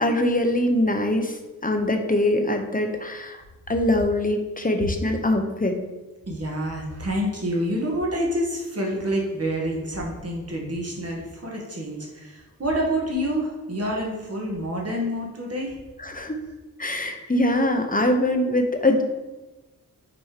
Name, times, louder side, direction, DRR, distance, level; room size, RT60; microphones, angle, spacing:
voice 1, 0.0-1.3 1.6-3.4 3.7-5.8 16.0-16.4 16.8-19.0, left 1 dB, 25° left, 4 dB, 0.8 m, -23 dB
voice 2, 6.3-15.7 17.2-17.3, equal, 45° right, -1 dB, 1.6 m, -28 dB
6.2 x 4.3 x 5.0 m, 1.1 s
wide cardioid pair, 100°, 36 cm